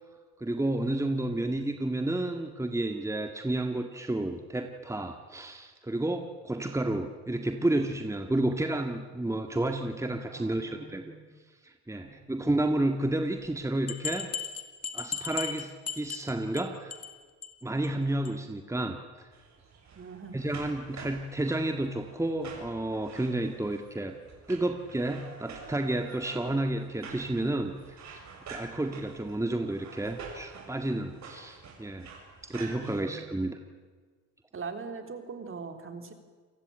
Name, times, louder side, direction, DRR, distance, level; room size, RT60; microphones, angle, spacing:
voice 1, 0.4-11.0 11.6-14.3 14.9-17.0 17.6-19.0 20.3-24.2 24.5-28.2 28.5-32.1 32.4-33.6, right 1 dB, 10° right, 5 dB, 1.9 m, -31 dB
voice 2, 10.3-11.3 12.0-12.5 20.0-20.5 32.8-33.4 34.5-36.1, right 5 dB, 45° right, 6 dB, 3.8 m, -42 dB
sound 1, 13.9-16.6 16.9-17.1 17.4-17.5 17.8-17.9 18.2-18.3, left 7 dB, 55° left, 2.6 m, -36 dB
sound 2, 19.3-33.0, right 4 dB, 65° right, 7.1 m, -48 dB
28.5 x 19.0 x 9.0 m, 1.5 s
cardioid pair, 90°, 30 cm